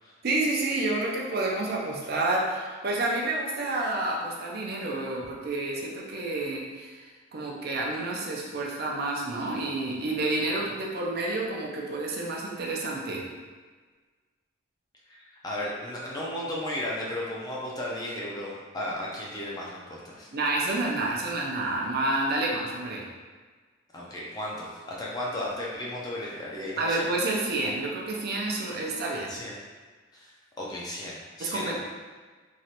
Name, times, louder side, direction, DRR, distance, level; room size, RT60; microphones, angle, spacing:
voice 1, 0.2-13.2 20.3-23.1 26.8-29.4 31.4-31.8, right 2 dB, 50° right, -2 dB, 0.5 m, -29 dB
voice 2, 15.1-20.3 23.9-27.0 29.3-29.6 30.1-30.3 30.6-31.8, left 1 dB, 20° left, -5 dB, 0.4 m, -35 dB
3.1 x 2.4 x 2.8 m, 1.4 s
head